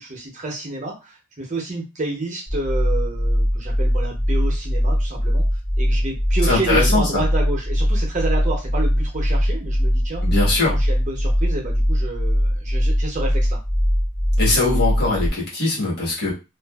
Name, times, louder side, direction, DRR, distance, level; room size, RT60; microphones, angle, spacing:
voice 1, 0.0-5.4 5.8-10.3 10.7-13.6, right 2 dB, 35° right, 0 dB, 0.7 m, -29 dB
sound 1, 2.5-15.3, equal, 25° left, 0.6 m, -21 dB
voice 2, 6.5-7.2 10.2-10.7 14.4-16.3, left 3 dB, 50° left, -5 dB, 1.4 m, -21 dB
2.5 x 2.4 x 2.3 m, 0.27 s
head